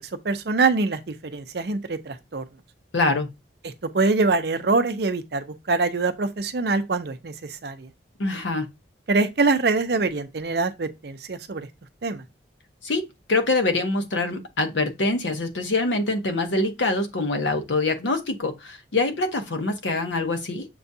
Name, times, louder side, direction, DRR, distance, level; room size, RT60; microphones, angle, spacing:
voice 1, 0.2-2.4 3.6-7.9 9.1-11.7 12.0-12.2, right 3 dB, 60° right, 0.5 m, -24 dB
voice 2, 2.9-3.3 8.2-8.7 12.8-20.7, left 2 dB, 80° left, 0.8 m, -24 dB
6.7 x 2.3 x 2.6 m
head